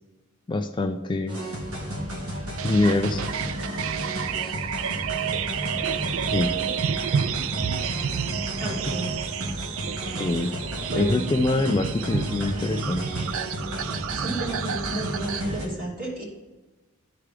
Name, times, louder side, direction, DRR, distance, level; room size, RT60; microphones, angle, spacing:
voice 1, 0.5-1.4 2.6-3.3 6.3-6.5 10.2-10.5 10.9-13.0, left 2 dB, 20° left, 6 dB, 0.3 m, -24 dB
sound 1, 1.3-15.7, equal, 85° right, 1.6 m, -33 dB
sound 2, 2.6-15.4, right 8 dB, 65° right, 0.4 m, -30 dB
voice 2, 8.6-9.1 10.9-11.2 14.1-16.2, right 1 dB, 40° right, -4 dB, 2.6 m, -32 dB
13.0 x 4.7 x 3.3 m, 1.1 s
head